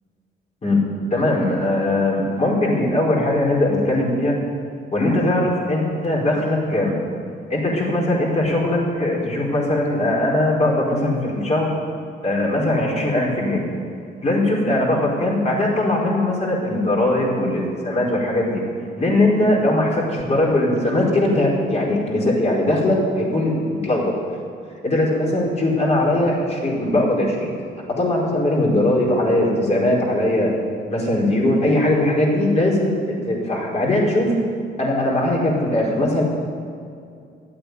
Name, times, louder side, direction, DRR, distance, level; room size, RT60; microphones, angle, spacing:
voice 1, 1.1-4.4 4.9-7.0 7.5-11.7 12.2-13.6 14.2-18.6 19.0-24.1 24.8-27.5 28.0-30.5 30.9-34.3 34.8-36.2, left 1 dB, 35° left, -4 dB, 4.6 m, -20 dB
12.5 x 8.7 x 9.5 m, 2.4 s
cardioid pair, 90°, 20 cm